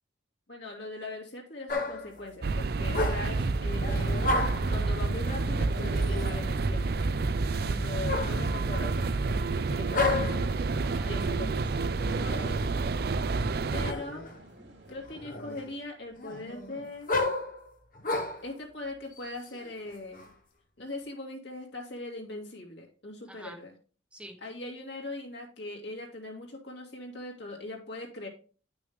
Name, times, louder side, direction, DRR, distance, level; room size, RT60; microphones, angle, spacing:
voice 1, 0.5-4.3 4.7-7.0 7.6-10.5 11.1-11.8 13.7-14.3 14.9-17.1 18.4-20.3 20.8-23.7 24.4-28.3, left 2 dB, 65° left, 0 dB, 2.5 m, -41 dB
sound 1, 1.7-2.1 2.8-3.4 3.8-4.8 5.7-6.5 8.1-9.1 9.9-10.5 12.0-12.7 13.8-14.4 14.9-15.7 16.2-18.5 19.2-20.3, left 3 dB, 45° left, 0.9 m, -32 dB
sound 2, 2.4-13.9, right 3 dB, 55° right, 0.4 m, -29 dB
sound 3, 3.5-15.0, right 1 dB, 70° right, 2.7 m, -52 dB
voice 2, 10.8-12.6 14.5-14.7 23.3-23.6 24.1-24.4, right 1 dB, 5° right, 3 dB, 1.1 m, -50 dB
10.5 x 6.1 x 3.5 m, 0.39 s
head